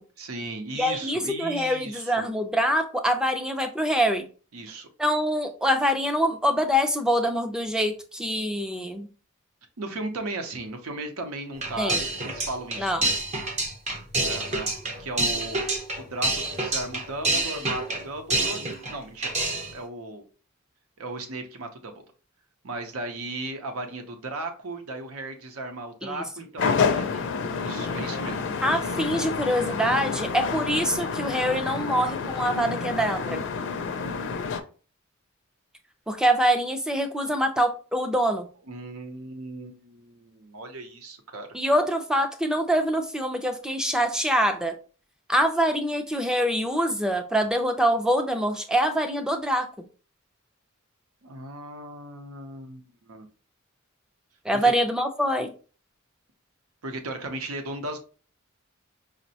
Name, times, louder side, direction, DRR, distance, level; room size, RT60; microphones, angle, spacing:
voice 1, 0.2-2.3 4.5-4.9 9.8-13.1 14.2-14.7 15.0-15.6 16.0-18.6 18.9-19.3 19.7-20.2 21.0-22.0 22.6-28.4 38.7-41.5 51.2-53.3 54.5-54.7 56.8-58.0, right 2 dB, 80° right, 0.7 m, -36 dB
voice 2, 0.7-4.3 5.0-9.1 11.8-12.0 12.8-13.0 26.0-26.2 28.6-33.4 36.1-38.5 41.5-44.8 45.3-49.7 54.4-55.5, equal, 5° right, 0.4 m, -24 dB
sound 1, 11.6-19.0 19.2-19.8, right 2 dB, 30° right, 0.7 m, -28 dB
sound 2, 26.6-34.6, left 5 dB, 60° left, 0.4 m, -29 dB
5.1 x 2.1 x 2.7 m
head